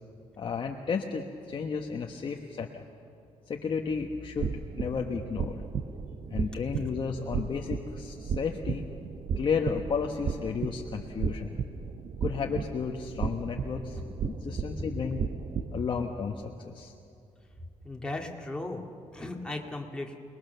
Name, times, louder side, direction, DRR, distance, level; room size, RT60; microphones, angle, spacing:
voice 1, 0.4-2.8 3.5-5.6 6.3-8.8 9.4-11.6 12.2-14.0 14.2-15.2 15.7-16.9, left 5 dB, 45° left, 2 dB, 1.2 m, -33 dB
sound 1, 4.4-15.8, right 6 dB, 50° right, 0.9 m, -35 dB
voice 2, 17.8-20.2, left 2 dB, 5° left, 0 dB, 2.0 m, -37 dB
29.0 x 20.0 x 6.8 m, 2.5 s
cardioid pair, 140°, 12 cm